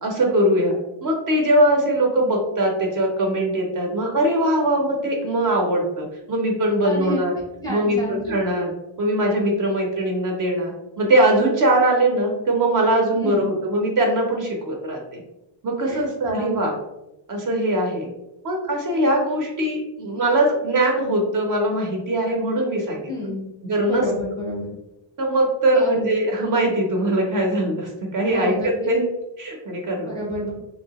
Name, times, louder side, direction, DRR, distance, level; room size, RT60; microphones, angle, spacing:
voice 1, 0.0-0.8 1.0-7.3 7.7-15.2 15.6-16.7 17.3-18.1 18.4-23.1 23.7-24.0 25.2-29.1 29.4-30.2, right 1 dB, 40° right, 1 dB, 0.5 m, -21 dB
voice 2, 6.8-7.3 7.6-8.4 13.2-13.5 15.8-16.0 16.3-16.6 23.1-23.4 23.8-24.7 25.7-26.0 28.2-28.9 30.1-30.5, left 1 dB, 10° left, -5 dB, 0.5 m, -29 dB
3.1 x 2.7 x 2.8 m, 0.95 s
cardioid pair, 175°, 47 cm